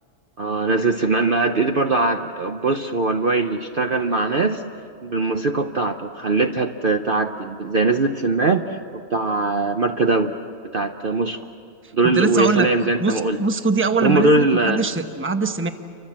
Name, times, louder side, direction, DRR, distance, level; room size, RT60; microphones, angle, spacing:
voice 1, 0.4-4.6 5.0-10.4 10.7-11.4 11.9-13.4 14.0-14.9, right 3 dB, 45° right, 4 dB, 0.9 m, -21 dB
voice 2, 12.0-15.7, right 3 dB, 10° right, 7 dB, 1.0 m, -22 dB
29.5 x 25.0 x 7.4 m, 2.5 s
omnidirectional pair, 1.5 m